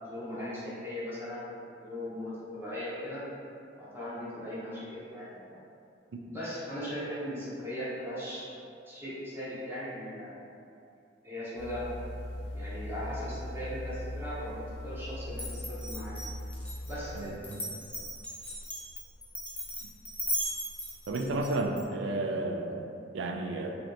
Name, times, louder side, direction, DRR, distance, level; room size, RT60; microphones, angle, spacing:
voice 1, 0.0-3.2 3.8-5.6 6.3-8.5 8.9-10.4 11.2-11.9 12.5-16.1 16.9-17.4, equal, 15° right, -10 dB, 0.8 m, -38 dB
sound 1, 11.6-17.2, left 1 dB, 75° left, 0.6 m, -40 dB
Glass, 15.3-21.8, equal, 10° left, 0.5 m, -37 dB
voice 2, 17.1-17.6 21.1-23.8, right 2 dB, 85° right, 3 dB, 0.3 m, -32 dB
3.1 x 2.7 x 2.6 m, 2.6 s
head